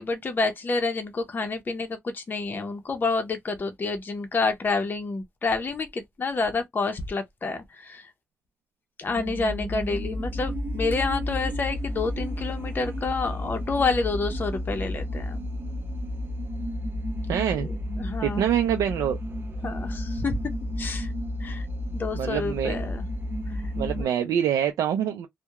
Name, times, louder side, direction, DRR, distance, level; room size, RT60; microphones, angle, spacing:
voice 1, 0.0-8.1 9.0-15.4 17.6-17.7 18.0-18.5 19.6-20.4 20.8-21.1 21.4-21.7 21.9-23.0 23.5-23.7 24.0-24.3, left 3 dB, 35° left, 0.6 m, -29 dB
sound 1, 9.0-24.0, left 1 dB, 40° right, 0.6 m, -32 dB
voice 2, 17.3-17.7 18.2-19.2 22.1-22.7 23.8-25.3, right 9 dB, 85° right, 0.4 m, -25 dB
2.8 x 2.1 x 2.3 m
cardioid pair, 95°, 6 cm